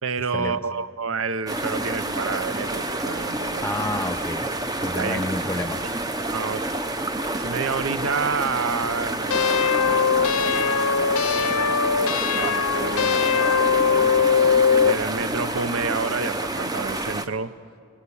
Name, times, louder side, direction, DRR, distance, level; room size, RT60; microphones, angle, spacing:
voice 1, 0.0-3.7 5.0-5.2 6.3-6.7 7.4-14.0 14.8-17.5, right 5 dB, 70° right, 14 dB, 0.6 m, -30 dB
sound 1, 1.5-17.3, right 2 dB, 15° right, 0.6 m, -29 dB
voice 2, 3.6-4.5 4.8-5.8, left 1 dB, 10° left, 9 dB, 0.9 m, -29 dB
sound 2, 9.3-15.0, left 6 dB, 80° left, 0.6 m, -21 dB
21.5 x 20.0 x 7.0 m, 2.2 s
head